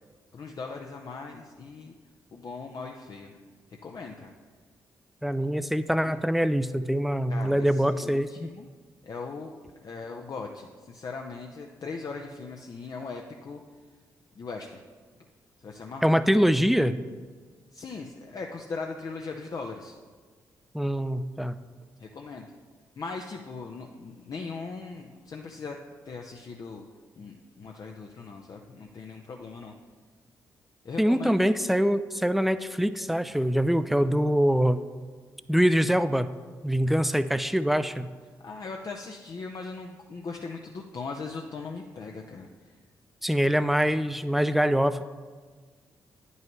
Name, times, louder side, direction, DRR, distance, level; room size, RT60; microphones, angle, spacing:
voice 1, 0.3-1.9 2.3-3.4 3.8-4.3 6.0-6.1 7.3-8.7 9.0-9.5 9.8-13.6 14.4-14.8 15.6-16.1 17.7-20.0 22.0-22.5 23.0-25.8 26.1-26.8 27.2-29.7 30.8-31.3 38.4-42.8, left 4 dB, 50° left, 2 dB, 0.6 m, -39 dB
voice 2, 5.2-8.5 16.0-17.0 20.7-21.6 31.0-34.8 35.5-36.3 36.6-38.1 43.2-45.0, equal, ahead, 12 dB, 0.4 m, -24 dB
9.4 x 5.5 x 3.1 m, 1.5 s
hypercardioid pair, 45°, 8 cm